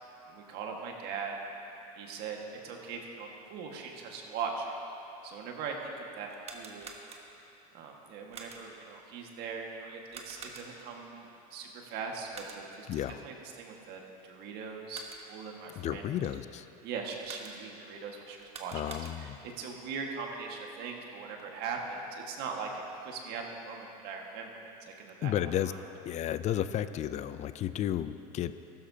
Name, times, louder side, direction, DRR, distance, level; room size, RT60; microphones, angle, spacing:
voice 1, 0.3-1.3 2.0-4.7 5.2-6.9 7.7-15.0 15.3-16.1 16.8-24.5 24.9-25.3 25.6-25.8, right 5 dB, 60° right, 1 dB, 1.7 m, -40 dB
sound 1, 6.3-7.6 8.3-8.9 10.1-11.0 12.3-12.9 14.7-15.5 17.2-17.9 18.4-19.5, right 4 dB, 35° right, 1.2 m, -48 dB
voice 2, 15.8-16.7 18.7-19.4 25.2-25.7 26.1-28.5, left 11 dB, 35° left, 13 dB, 0.4 m, -32 dB
15.0 x 12.5 x 2.8 m, 3.0 s
supercardioid pair, 105°, 19 cm